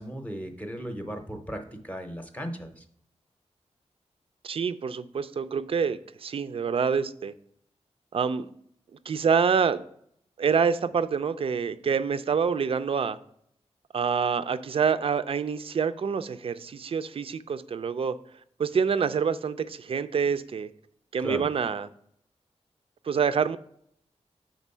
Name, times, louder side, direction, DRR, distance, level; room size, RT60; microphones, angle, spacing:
voice 1, 0.0-2.8 21.2-21.5, equal, 10° left, 4 dB, 0.7 m, -36 dB
voice 2, 4.4-7.3 8.1-8.5 9.1-9.8 10.4-13.2 13.9-18.1 18.6-20.7 21.1-21.9 23.1-23.6, right 6 dB, 55° right, 13 dB, 0.4 m, -26 dB
6.0 x 3.9 x 5.5 m, 0.67 s
wide cardioid pair, 145°, 12 cm